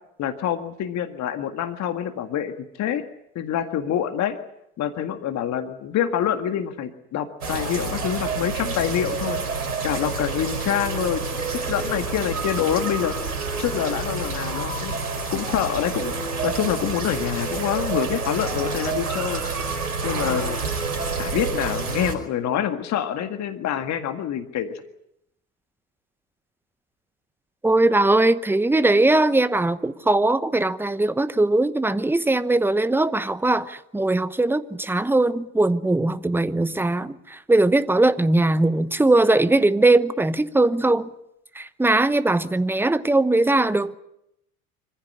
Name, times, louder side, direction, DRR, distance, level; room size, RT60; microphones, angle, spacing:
voice 1, 0.2-3.0 3.4-4.4 4.8-9.4 9.8-13.1 13.6-15.0 15.3-16.1 16.4-19.5 20.0-20.6 21.2-24.7, left 9 dB, 40° left, 1.9 m, -26 dB
sound 1, 7.4-22.1, right 4 dB, 80° right, 5.1 m, -28 dB
voice 2, 27.6-41.1 41.5-43.9, right 2 dB, 5° right, 1.0 m, -20 dB
25.5 x 15.5 x 9.9 m
figure-of-eight pair, 80°, 44 cm